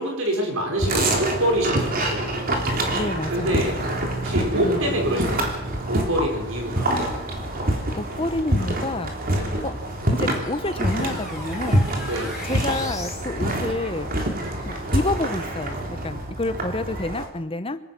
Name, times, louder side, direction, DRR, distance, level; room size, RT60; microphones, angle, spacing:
voice 1, 0.0-2.3 3.3-3.8 4.1-6.9 9.3-9.6 12.0-12.4, equal, 70° right, 2 dB, 6.0 m, -26 dB
sound 1, 0.8-17.3, right 1 dB, 45° right, 3.5 m, -26 dB
voice 2, 2.9-3.7 4.5-4.9 8.0-9.1 9.6-9.7 10.1-11.9 12.4-14.1 14.7-17.8, left 2 dB, 25° left, 12 dB, 1.1 m, -29 dB
sound 2, 9.4-13.3, left 1 dB, 5° right, 7.4 m, -38 dB
27.0 x 17.0 x 6.2 m, 0.92 s
head